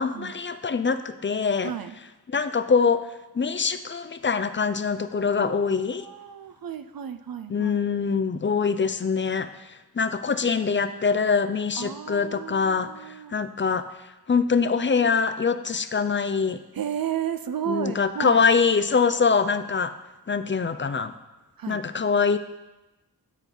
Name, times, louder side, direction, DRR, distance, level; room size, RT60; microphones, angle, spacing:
voice 1, 0.0-1.8 2.3-3.1 3.3-6.1 7.5-13.9 14.3-16.6 17.7-20.0 20.3-21.1 21.7-22.4, left 5 dB, 30° left, 11 dB, 0.4 m, -24 dB
voice 2, 5.4-7.7 11.7-13.5 16.7-18.4 21.6-21.8, right 9 dB, 60° right, 10 dB, 0.5 m, -33 dB
8.9 x 4.5 x 3.9 m, 1.0 s
cardioid pair, 40°, 40 cm